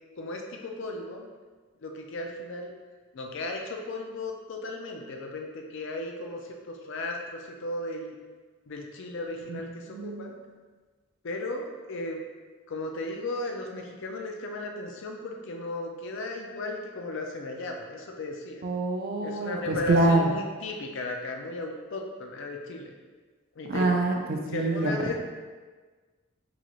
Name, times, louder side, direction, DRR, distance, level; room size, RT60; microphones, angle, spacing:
voice 1, 0.2-1.3 1.8-2.7 3.1-8.2 8.7-10.3 11.2-12.2 12.7-18.6 19.2-22.9 23.6-23.9 24.5-25.2, left 2 dB, 60° left, 2 dB, 0.4 m, -35 dB
voice 2, 9.9-10.4 18.6-20.3 23.7-25.2, right 2 dB, 45° right, 1 dB, 0.4 m, -26 dB
3.8 x 2.4 x 3.0 m, 1.4 s
head